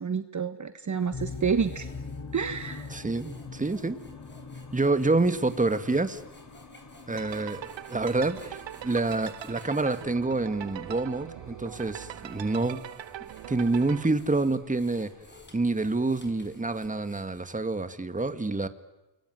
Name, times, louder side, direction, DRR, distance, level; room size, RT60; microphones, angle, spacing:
voice 1, 0.0-1.9 2.3-2.9, right 6 dB, 40° right, 9 dB, 1.5 m, -29 dB
sound 1, 0.9-10.1 10.7-10.8 11.5-17.7, left 2 dB, 25° left, 6.2 m, -56 dB
sound 2, 1.1-16.9, left 4 dB, 40° left, 4.5 m, -45 dB
voice 2, 2.9-4.0 4.7-6.2 7.1-8.6 8.8-12.8 13.5-15.1 15.5-18.7, right 3 dB, 15° right, 10 dB, 1.9 m, -27 dB
sound 3, 7.2-14.1, right 11 dB, 70° right, 0.9 m, -41 dB
28.5 x 22.0 x 9.4 m, 1.0 s
cardioid pair, 85°, 46 cm